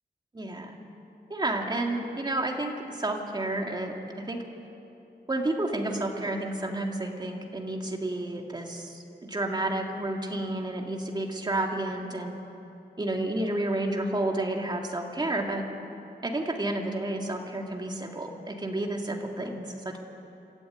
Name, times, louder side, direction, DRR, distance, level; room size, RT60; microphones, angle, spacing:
voice 1, 0.3-0.8 1.3-4.4 5.3-12.3 13.0-15.6 16.2-20.0, right 2 dB, 25° right, 1 dB, 2.2 m, -31 dB
26.5 x 13.5 x 9.2 m, 2.9 s
wide cardioid pair, 145°, 17 cm